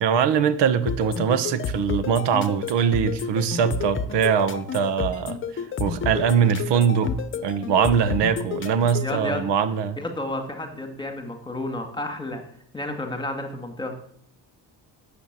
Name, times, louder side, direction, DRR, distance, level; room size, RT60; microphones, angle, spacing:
voice 1, 0.0-7.1 7.4-10.0, right 7 dB, 80° right, 11 dB, 1.5 m, -22 dB
sound 1, 0.9-9.1, left 6 dB, 30° left, 0.9 m, -30 dB
voice 2, 9.0-9.4 10.0-12.4 12.7-13.9, left 1 dB, 10° left, 4 dB, 2.0 m, -31 dB
13.0 x 7.7 x 8.9 m, 0.65 s
cardioid pair, 180°, 41 cm